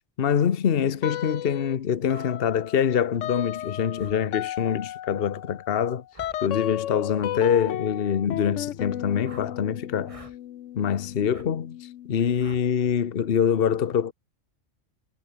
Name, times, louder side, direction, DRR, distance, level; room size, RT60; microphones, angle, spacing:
voice 1, 0.2-6.0 6.4-10.2 10.8-11.8 12.1-14.1, left 8 dB, 55° left, 1.1 m, -25 dB
sound 1, 1.0-1.8 2.1-12.4, left 12 dB, 85° left, 1.0 m, -35 dB
sound 2, 2.1-2.3 4.0-4.2 6.1-6.4 7.1-7.3 9.2-9.5 10.0-10.4 11.3-11.5 12.4-12.7, right 2 dB, 25° right, 2.9 m, -47 dB
omnidirectional pair, 1.3 m